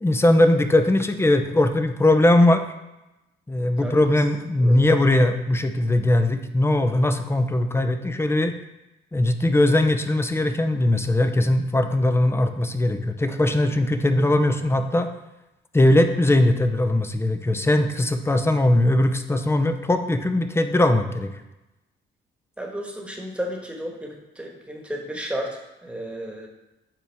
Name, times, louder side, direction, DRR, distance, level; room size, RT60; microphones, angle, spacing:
voice 1, 0.0-2.7 3.5-8.5 9.1-15.1 15.7-21.3, left 1 dB, 10° left, 8 dB, 0.6 m, -20 dB
voice 2, 22.6-26.5, equal, 5° right, 0 dB, 1.4 m, -33 dB
8.9 x 4.6 x 3.4 m, 0.98 s
cardioid pair, 90°, 20 cm